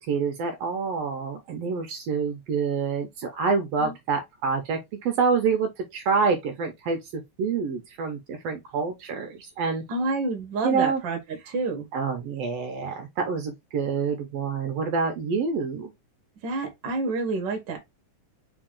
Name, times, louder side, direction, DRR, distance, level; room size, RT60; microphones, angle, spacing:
voice 1, 0.1-9.8 10.6-11.0 11.4-11.5 11.9-15.9, right 5 dB, 70° right, 1.6 m, -27 dB
voice 2, 9.9-11.2 11.5-11.9 16.4-17.8, right 3 dB, 50° right, 1.5 m, -28 dB
4.4 x 2.9 x 3.6 m
omnidirectional pair, 3.5 m